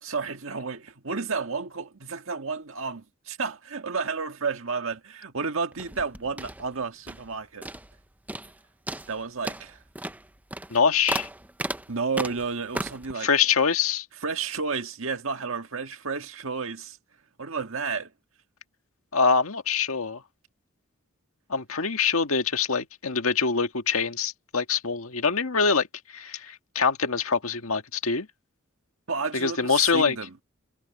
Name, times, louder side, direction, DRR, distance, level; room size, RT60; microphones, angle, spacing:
voice 1, 0.0-7.7 9.1-9.8 11.9-13.3 14.2-17.0 17.4-18.1 29.1-30.4, right 5 dB, 70° right, 1.7 m, -31 dB
sound 1, 5.7-7.3 7.6-8.0 8.3-8.6 8.9-13.1, right 1 dB, 10° right, 0.6 m, -35 dB
voice 2, 10.7-11.3 13.2-14.0 19.1-20.2 21.5-25.9 26.1-28.3 29.3-30.1, left 5 dB, 85° left, 1.8 m, -24 dB
head